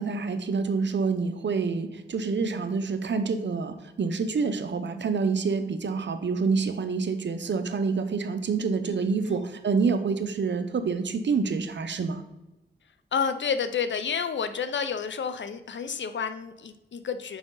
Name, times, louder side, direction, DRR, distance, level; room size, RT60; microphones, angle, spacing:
voice 1, 0.0-12.2, right 4 dB, 70° right, 9 dB, 0.7 m, -27 dB
voice 2, 8.9-9.4 13.1-17.4, left 6 dB, 75° left, 10 dB, 0.6 m, -30 dB
6.1 x 5.0 x 3.8 m, 0.96 s
cardioid pair, 50°, 19 cm